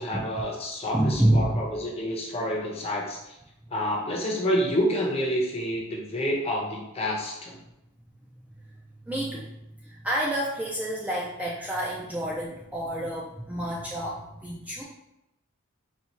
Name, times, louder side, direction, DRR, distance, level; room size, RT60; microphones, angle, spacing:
voice 1, 0.0-3.4 3.7-7.6, equal, 30° left, -2 dB, 0.6 m, -28 dB
voice 2, 0.9-1.6 8.7-8.8 9.0-9.5 9.8-14.8, right 1 dB, 5° right, -4 dB, 0.3 m, -28 dB
4.2 x 2.3 x 2.8 m, 0.86 s
head